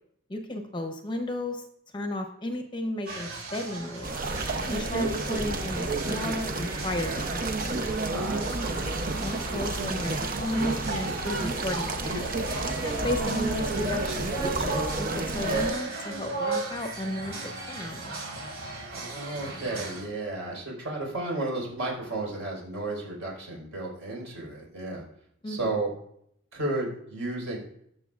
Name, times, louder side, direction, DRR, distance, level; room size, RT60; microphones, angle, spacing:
voice 1, 0.3-1.6 1.9-4.2 4.7-7.6 9.2-12.3 12.8-17.3 17.7-18.1 25.4-25.8, left 1 dB, 20° left, 4 dB, 0.8 m, -33 dB
sound 1, 3.1-20.0, right 2 dB, 85° right, 3.9 m, -36 dB
sound 2, 4.0-15.7, right 3 dB, 40° right, 0.7 m, -31 dB
voice 2, 8.1-8.9 18.9-25.0 25.5-25.9 26.5-27.6, right 2 dB, 65° right, -3 dB, 4.4 m, -33 dB
19.5 x 6.7 x 2.4 m, 0.70 s
head